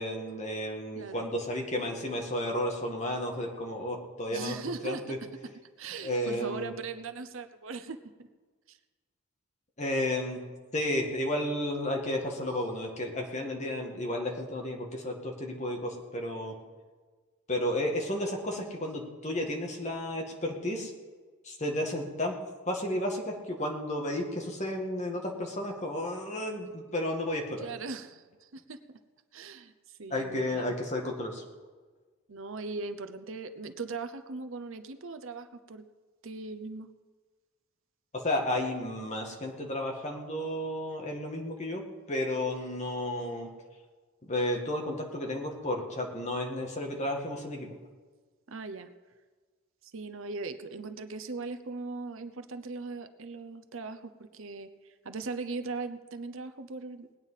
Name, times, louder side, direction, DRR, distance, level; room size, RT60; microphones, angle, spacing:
voice 1, 0.0-4.6 4.8-5.2 6.0-6.7 9.8-10.4 10.7-16.5 17.5-20.9 21.4-22.4 22.7-27.7 30.1-31.4 38.2-41.8 42.1-43.5 44.2-47.7, left 1 dB, 30° left, 0 dB, 1.8 m, -32 dB
voice 2, 0.9-1.3 4.3-5.2 5.8-8.3 8.7-8.8 18.6-18.9 27.6-29.0 29.3-30.8 32.3-35.9 36.2-36.9 48.5-48.9 49.8-57.1, right 4 dB, 60° right, 9 dB, 0.7 m, -39 dB
19.5 x 9.1 x 5.7 m, 1.4 s
head